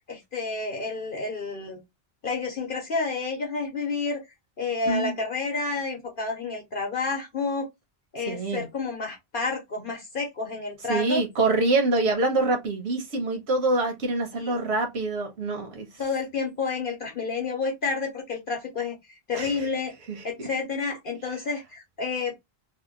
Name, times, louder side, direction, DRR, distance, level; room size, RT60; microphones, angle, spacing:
voice 1, 0.0-1.8 2.2-4.2 4.6-7.7 8.1-11.2 14.4-14.7 16.0-18.9 19.3-19.9 20.2-22.4, left 4 dB, 55° left, 0.9 m, -30 dB
voice 2, 8.3-8.7 10.9-15.9 19.3-19.7 20.1-20.7, right 2 dB, 80° right, 1.1 m, -25 dB
2.8 x 2.1 x 3.6 m
omnidirectional pair, 1.1 m